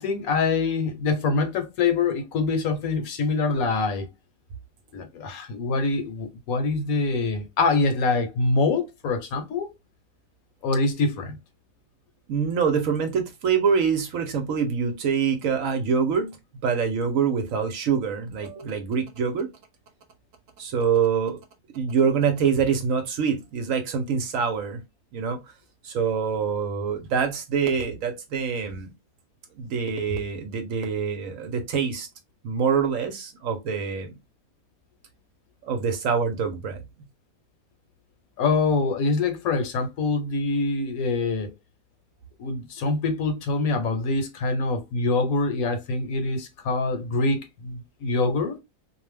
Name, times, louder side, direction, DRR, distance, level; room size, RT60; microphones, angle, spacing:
voice 1, 0.0-4.1 4.9-9.7 10.6-11.4 38.4-41.5 42.4-48.6, left 3 dB, 75° left, 1.1 m, -25 dB
voice 2, 12.3-16.3 16.6-19.5 20.6-21.4 21.7-24.8 25.1-25.4 25.8-28.9 29.6-32.1 32.4-34.1 35.6-36.8, right 6 dB, 65° right, 0.9 m, -25 dB
2.6 x 2.1 x 3.2 m
omnidirectional pair, 1.6 m